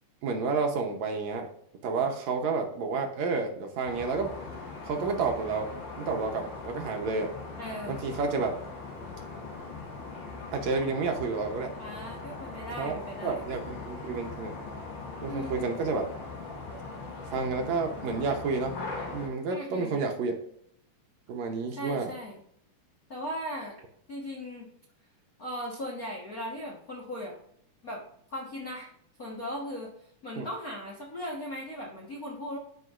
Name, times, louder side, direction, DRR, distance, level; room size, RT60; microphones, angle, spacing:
voice 1, 0.2-1.5 1.8-4.3 4.9-5.7 6.0-7.3 7.9-8.6 10.5-11.7 12.8-14.6 15.2-16.1 17.3-18.8 19.1-20.4 21.3-22.1 30.4-30.5, right 4 dB, 70° right, 3 dB, 2.0 m, -30 dB
sound 1, 3.8-19.3, left 3 dB, 75° left, 3.0 m, -40 dB
voice 2, 7.6-8.0 11.7-13.4 15.2-15.7 19.5-20.0 21.7-22.4 23.1-23.8 24.1-24.7 25.4-27.4 27.8-28.0 28.3-28.9 29.2-29.9 30.2-32.6, equal, 55° left, -4 dB, 1.0 m, -38 dB
12.5 x 5.1 x 2.5 m, 0.69 s
omnidirectional pair, 3.7 m